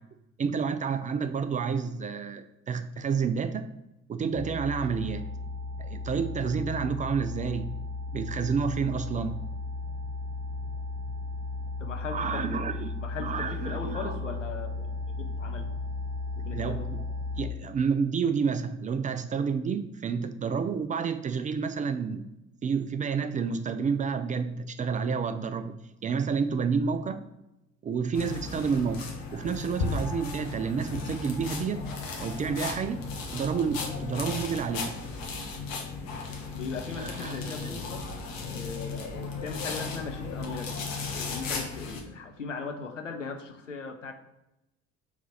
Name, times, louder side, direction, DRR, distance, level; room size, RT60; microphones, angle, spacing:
voice 1, 0.4-3.7 4.1-5.3 5.8-7.7 8.1-9.4 12.1-12.9 13.2-14.2 16.5-17.0 17.4-22.3 22.6-27.2 27.8-31.9 32.2-33.1 33.3-34.9 37.0-37.7, right 6 dB, 20° right, 9 dB, 0.4 m, -30 dB
sound 1, 4.3-17.4, left 3 dB, 15° left, 1.3 m, -35 dB
voice 2, 11.8-12.6 13.0-14.9 15.2-15.7 16.4-16.9 36.5-38.1 38.5-44.1, left 5 dB, 85° left, 5 dB, 0.7 m, -38 dB
sound 2, 28.1-42.0, left 4 dB, 60° left, 1.3 m, -35 dB
4.7 x 3.9 x 5.5 m, 0.90 s
figure-of-eight pair, 50°, 36 cm